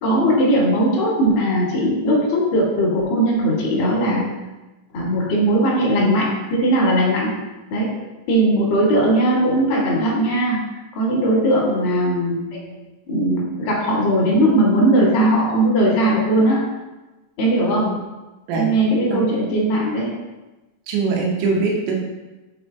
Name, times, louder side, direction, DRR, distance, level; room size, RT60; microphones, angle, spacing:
voice 1, 0.0-4.2 4.9-7.3 7.7-7.9 8.3-10.6 10.9-16.6 17.4-17.9 18.5-20.1, right 1 dB, 60° left, -5 dB, 1.3 m, -19 dB
voice 2, 20.9-22.0, right 4 dB, 85° right, -1 dB, 3.4 m, -22 dB
7.1 x 4.3 x 3.4 m, 1.1 s
omnidirectional pair, 5.2 m